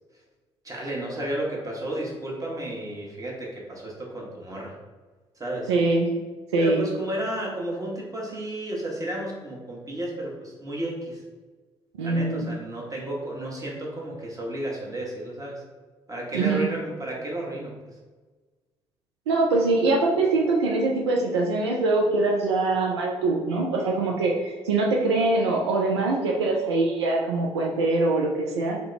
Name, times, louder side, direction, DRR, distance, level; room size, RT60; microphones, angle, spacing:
voice 1, 0.6-4.7 5.4-5.7 6.6-11.2 12.0-15.6 16.1-17.7, right 1 dB, 25° right, -3 dB, 1.2 m, -32 dB
voice 2, 5.7-6.1 6.5-6.9 12.0-12.5 16.3-16.7 19.3-28.8, right 3 dB, 85° right, -1 dB, 0.4 m, -23 dB
2.7 x 2.2 x 4.0 m, 1.3 s
hypercardioid pair, 50°, 14 cm